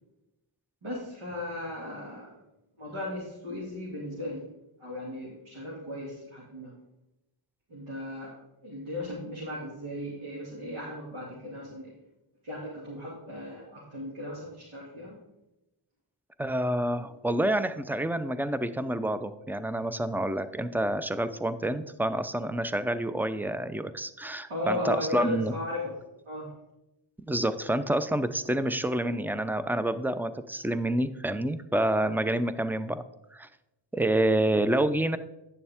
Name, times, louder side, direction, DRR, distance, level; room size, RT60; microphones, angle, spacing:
voice 1, 0.8-2.3 2.8-4.4 4.8-6.7 7.7-8.3 8.6-11.9 12.4-15.1 24.5-26.0 26.3-26.5, left 1 dB, 75° right, -5 dB, 2.5 m, -36 dB
voice 2, 16.4-25.5 27.3-33.0 33.3-33.5 33.9-35.2, right 1 dB, 5° right, 12 dB, 0.5 m, -28 dB
10.0 x 6.9 x 3.5 m, 0.93 s
cardioid pair, 55°, 50 cm